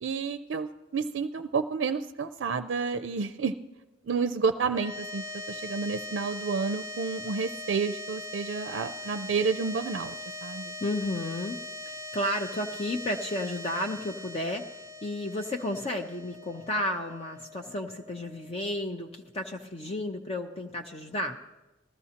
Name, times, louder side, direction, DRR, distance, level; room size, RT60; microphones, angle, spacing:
voice 1, 0.0-3.5 4.0-10.2 10.4-10.7, right 5 dB, 75° right, 9 dB, 0.4 m, -30 dB
sound 1, 4.7-19.1, left 2 dB, 15° right, 0.5 m, -41 dB
voice 2, 10.8-21.4, left 1 dB, 35° left, 3 dB, 0.6 m, -32 dB
19.5 x 13.5 x 2.9 m, 1.1 s
head